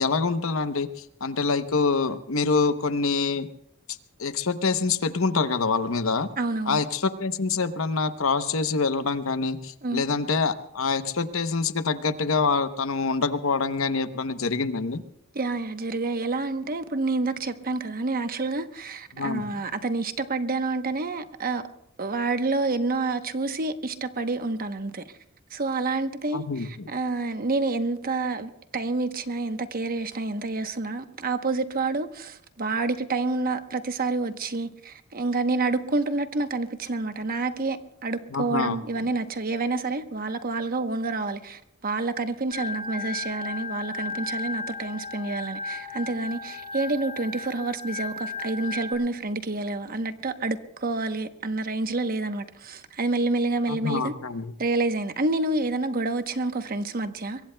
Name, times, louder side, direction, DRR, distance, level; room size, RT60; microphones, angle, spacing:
voice 1, 0.0-3.5 4.2-6.3 6.7-15.0 19.1-19.5 26.3-26.9 38.3-38.8 53.7-54.5, left 4 dB, 70° left, 0.9 m, -26 dB
voice 2, 6.4-6.8 9.8-10.1 15.3-21.6 22.0-25.0 25.5-37.8 38.0-54.1 54.6-57.4, right 3 dB, 45° right, 1.0 m, -28 dB
Organ, 42.5-48.9, left 4 dB, 30° left, 5.0 m, -35 dB
24.0 x 22.5 x 2.3 m
head